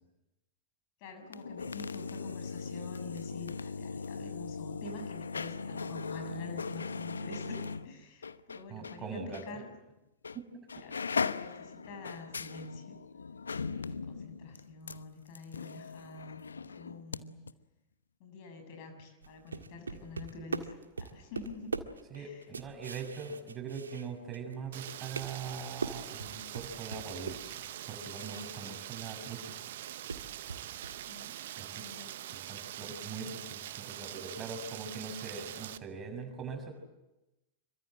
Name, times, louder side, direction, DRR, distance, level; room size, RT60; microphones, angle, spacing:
voice 1, 1.0-9.7 10.7-11.0 11.3-13.0 13.7-16.4 16.7-17.3 18.2-21.7 22.1-22.5 31.1-31.4 31.7-32.2, left 3 dB, 45° left, 6 dB, 6.9 m, -46 dB
sound 1, 1.2-9.0 9.3-9.5 10.2-10.4 10.7-17.2 17.5-17.6, left 5 dB, 75° left, 0.9 m, -39 dB
voice 2, 8.7-9.6 10.3-10.7 22.1-29.6 31.6-31.8 32.3-36.7, right 5 dB, 25° right, 4 dB, 6.9 m, -42 dB
sound 2, 19.2-24.5 24.8-29.4 29.7-31.1, right 4 dB, 75° right, 1.7 m, -41 dB
Rain, 24.7-35.8, right 13 dB, 55° right, 1.0 m, -43 dB
27.0 x 24.0 x 7.8 m, 0.98 s
figure-of-eight pair, 90°, 0 cm